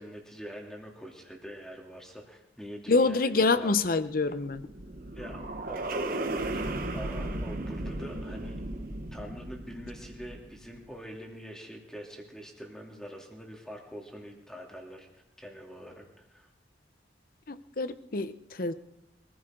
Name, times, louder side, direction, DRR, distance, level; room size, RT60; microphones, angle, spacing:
voice 1, 0.0-3.7 5.1-6.6 6.9-8.6 9.1-16.5, equal, 5° left, 0 dB, 2.9 m, -44 dB
voice 2, 2.9-4.6 17.5-18.7, left 3 dB, 55° left, 13 dB, 0.8 m, -26 dB
sound 1, 4.4-10.7, right 2 dB, 55° right, 1.3 m, -35 dB
24.0 x 15.0 x 3.8 m, 0.87 s
head